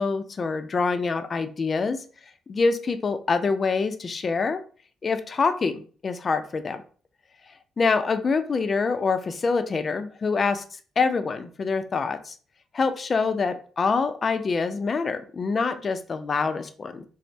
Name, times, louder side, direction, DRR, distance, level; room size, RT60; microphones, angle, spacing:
voice 1, 0.0-2.0 2.5-4.6 5.0-6.8 7.8-10.6 11.0-12.4 12.7-17.0, left 4 dB, 40° left, 9 dB, 0.4 m, -25 dB
4.3 x 2.0 x 2.6 m, 0.41 s
cardioid pair, 90°, 0 cm